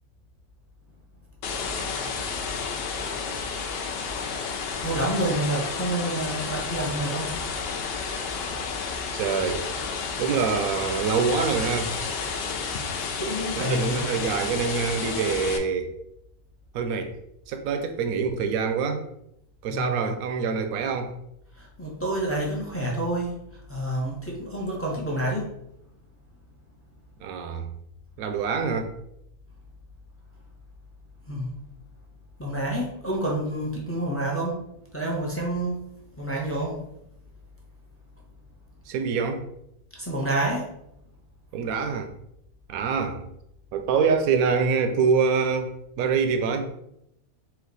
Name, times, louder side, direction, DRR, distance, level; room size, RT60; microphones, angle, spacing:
sound 1, 1.4-15.6, left 5 dB, 70° left, 0.6 m, -31 dB
voice 1, 4.8-7.3 13.2-14.1 19.7-20.0 21.6-23.3 23.7-25.5 31.3-31.5 32.4-34.6 34.9-35.8 36.2-36.8 39.9-40.7, right 1 dB, 15° left, -3 dB, 0.5 m, -28 dB
voice 2, 9.1-9.6 10.2-11.9 13.6-15.9 16.7-17.1 17.5-19.1 19.6-21.1 27.2-27.7 28.2-28.9 38.9-39.5 41.5-42.1 42.7-43.3 43.7-46.7, right 5 dB, 75° right, 7 dB, 1.0 m, -25 dB
4.3 x 2.3 x 4.0 m, 0.79 s
omnidirectional pair, 1.6 m